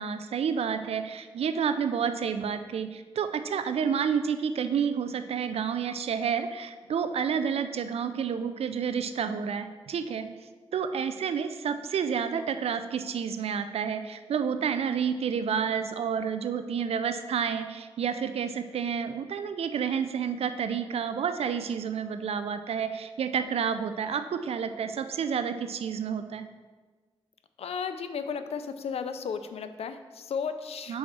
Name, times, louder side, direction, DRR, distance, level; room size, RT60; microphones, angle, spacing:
voice 1, 0.0-10.3 10.7-26.5 30.9-31.0, right 7 dB, 85° right, 10 dB, 0.4 m, -30 dB
voice 2, 27.6-31.0, left 6 dB, 90° left, 10 dB, 0.4 m, -34 dB
4.8 x 4.1 x 5.9 m, 1.4 s
cardioid pair, 60°, 10 cm